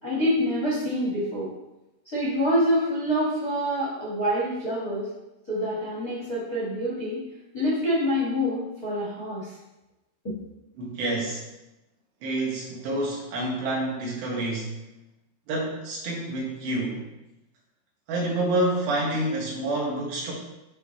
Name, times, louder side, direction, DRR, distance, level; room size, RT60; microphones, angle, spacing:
voice 1, 0.0-1.5 2.1-5.1 5.5-7.2 7.5-9.5 10.2-10.3, equal, 45° left, -6 dB, 1.1 m, -26 dB
voice 2, 10.8-11.4 12.2-14.7 15.5-17.1 18.1-20.3, right 1 dB, 90° right, -4 dB, 3.9 m, -28 dB
10.5 x 4.1 x 3.2 m, 0.95 s
omnidirectional pair, 4.7 m